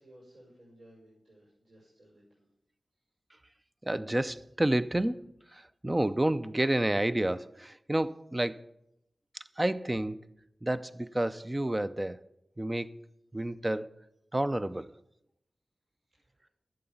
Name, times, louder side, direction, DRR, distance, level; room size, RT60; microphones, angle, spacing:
voice 1, 0.0-2.5 16.1-16.5, right 1 dB, 65° right, 5.3 m, -58 dB
voice 2, 3.8-8.6 9.3-10.3 10.6-12.2 12.6-12.9 13.3-13.9 14.3-14.9, right 1 dB, 20° right, 0.5 m, -30 dB
11.5 x 7.8 x 7.1 m
wide cardioid pair, 75°, 0 cm